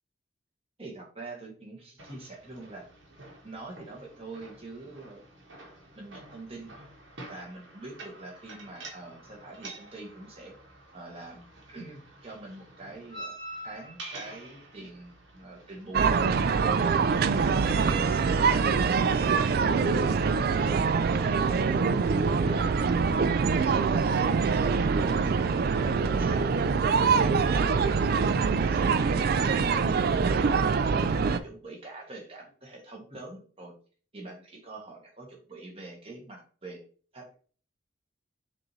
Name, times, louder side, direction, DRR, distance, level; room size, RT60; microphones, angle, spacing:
voice 1, 0.8-2.9 3.4-5.2 5.9-6.7 7.3-10.5 10.9-13.4 13.6-16.1 16.6-19.3 19.8-20.2 20.5-22.7 24.2-26.5 27.0-29.8 30.1-33.7 34.1-36.8 37.1-37.4, right 2 dB, 30° right, 0 dB, 1.3 m, -44 dB
sound 1, 2.0-17.0, right 2 dB, 75° right, 1.4 m, -47 dB
sound 2, 15.9-31.4, right 5 dB, 50° right, 0.3 m, -24 dB
5.9 x 2.7 x 3.1 m, 0.42 s
head